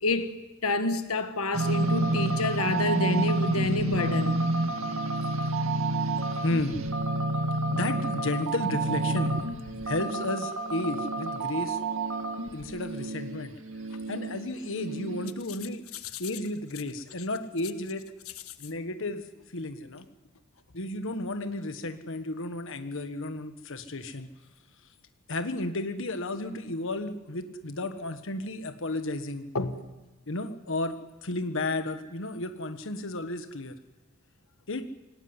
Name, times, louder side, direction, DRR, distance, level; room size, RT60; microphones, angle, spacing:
voice 1, 0.0-4.4 29.5-29.8, left 2 dB, 90° left, 1.5 m, -28 dB
sound 1, 1.5-15.3, right 2 dB, 70° right, 2.4 m, -29 dB
voice 2, 6.4-6.8 7.7-9.4 9.8-11.8 12.5-13.5 14.1-15.8 16.2-18.0 18.6-19.2 19.5-20.1 20.7-24.3 25.3-29.5 30.3-31.0 31.2-33.7 34.7-34.9, left 2 dB, 65° left, 1.5 m, -32 dB
26.0 x 18.5 x 9.8 m
head